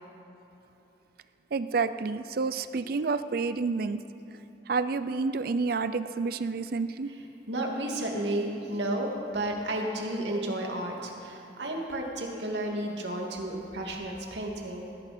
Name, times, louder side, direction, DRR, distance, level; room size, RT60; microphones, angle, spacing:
voice 1, 1.5-4.0 4.7-7.1, right 4 dB, 55° right, 12 dB, 0.4 m, -29 dB
voice 2, 7.5-14.9, right 1 dB, 75° right, 0 dB, 2.3 m, -32 dB
18.5 x 15.0 x 4.3 m, 3.0 s
head